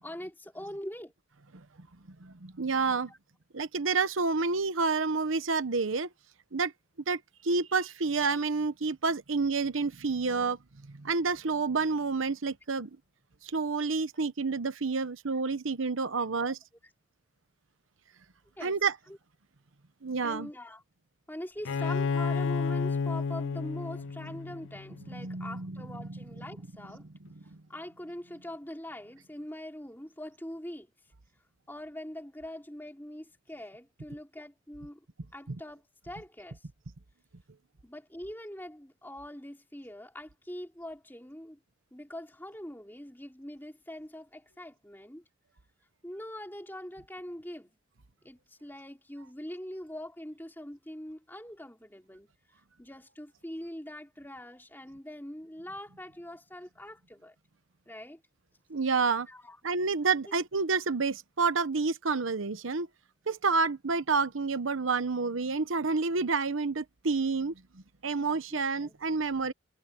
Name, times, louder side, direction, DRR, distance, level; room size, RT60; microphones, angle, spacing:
voice 1, 0.0-1.1 3.1-3.2 16.3-16.5 18.6-18.8 19.1-19.2 20.2-20.8 21.3-27.1 27.7-30.9 31.7-35.1 35.3-36.7 37.8-41.6 41.9-45.2 46.0-47.7 48.2-52.3 52.8-57.4 57.9-58.2 59.3-59.6 68.5-69.0, left 1 dB, 10° left, 3.5 m, -43 dB
voice 2, 2.2-3.1 3.5-6.1 6.5-6.7 7.1-10.6 10.9-12.9 13.4-16.6 18.6-18.9 20.0-20.5 25.1-25.8 26.1-26.2 35.5-35.6 58.7-59.3 59.6-62.9 63.3-67.5 68.0-69.5, right 4 dB, 85° right, 1.0 m, -29 dB
Bowed string instrument, 21.7-25.3, left 4 dB, 70° left, 0.4 m, -31 dB
head